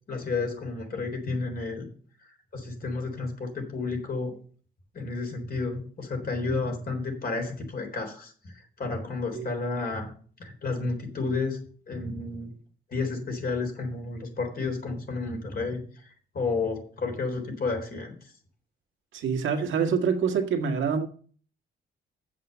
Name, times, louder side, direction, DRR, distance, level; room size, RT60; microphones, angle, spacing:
voice 1, 0.1-1.9 2.5-4.4 4.9-10.1 10.4-12.5 12.9-16.1 16.3-18.2, left 3 dB, 50° left, 3.8 m, -31 dB
voice 2, 19.1-21.1, right 6 dB, 75° right, 1.7 m, -26 dB
7.6 x 7.4 x 6.8 m
cardioid pair, 90°, 20 cm